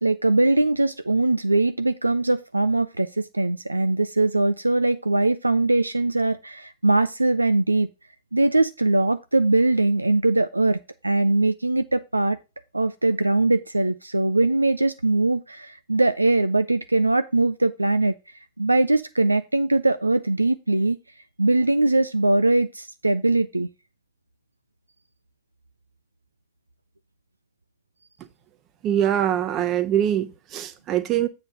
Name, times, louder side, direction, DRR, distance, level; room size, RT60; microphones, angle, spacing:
voice 1, 0.0-7.9 8.3-12.4 12.7-18.1 18.6-21.0 21.4-23.7, right 2 dB, 85° right, 0.4 m, -21 dB
voice 2, 28.8-31.3, right 10 dB, 35° right, 0.9 m, -23 dB
7.8 x 4.1 x 6.2 m
figure-of-eight pair, 90°, 0 cm